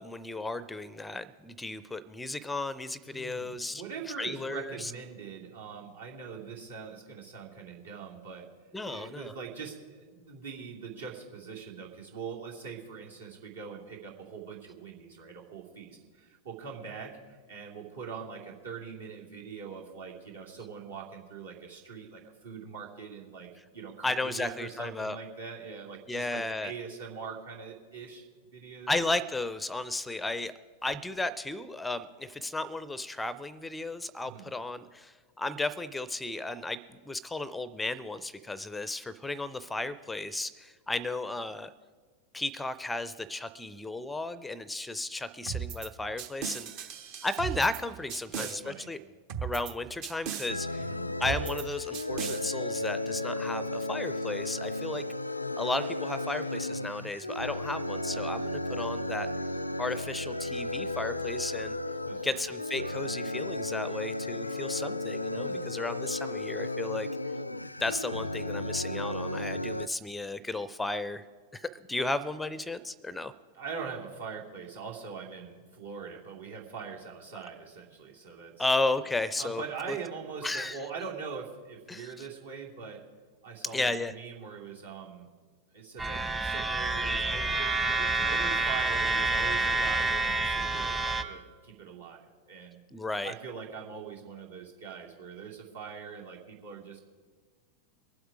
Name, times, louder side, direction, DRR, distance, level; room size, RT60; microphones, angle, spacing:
voice 1, 0.0-3.8 4.2-4.9 8.7-9.3 24.0-25.2 26.1-26.7 28.9-30.5 30.8-41.7 42.3-46.9 47.2-49.0 49.4-50.9 51.2-55.0 55.6-59.3 59.8-61.8 62.2-67.1 67.8-71.2 71.5-73.3 78.6-80.0 80.4-80.8 81.9-82.2 83.7-84.1 92.9-93.3, left 2 dB, 10° left, 17 dB, 0.5 m, -34 dB
voice 2, 3.1-8.5 8.9-17.1 17.5-23.5 23.7-28.3 28.5-28.9 34.2-34.5 48.4-48.9 50.8-51.1 62.1-62.4 65.3-65.6 73.5-78.7 79.4-83.0 83.4-85.3 85.7-92.8 93.2-97.0, right 6 dB, 70° right, -2 dB, 2.7 m, -42 dB
sound 1, 45.5-45.9 46.2-47.8 48.1-48.6 49.3-49.7 50.0-50.5 51.2-51.6 51.9-52.4, right 8 dB, 45° right, 0.8 m, -37 dB
sound 2, 50.5-69.9, left 2 dB, 85° left, 0.3 m, -34 dB
sound 3, 86.0-91.2, right 3 dB, 15° right, 1.0 m, -28 dB
23.5 x 7.9 x 4.9 m, 1.5 s
figure-of-eight pair, 90°, 0 cm